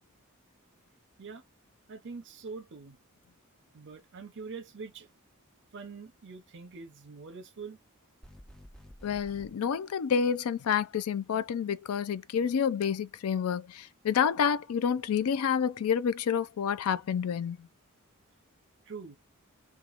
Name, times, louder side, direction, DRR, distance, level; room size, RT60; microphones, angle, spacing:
voice 1, 1.9-3.0 3.7-5.1 5.7-7.8 18.9-19.1, right 4 dB, 55° right, 0.7 m, -44 dB
sound 1, 8.2-9.5, equal, 5° left, 0.4 m, -51 dB
voice 2, 9.0-17.7, left 7 dB, 70° left, 0.4 m, -29 dB
2.9 x 2.3 x 2.4 m
head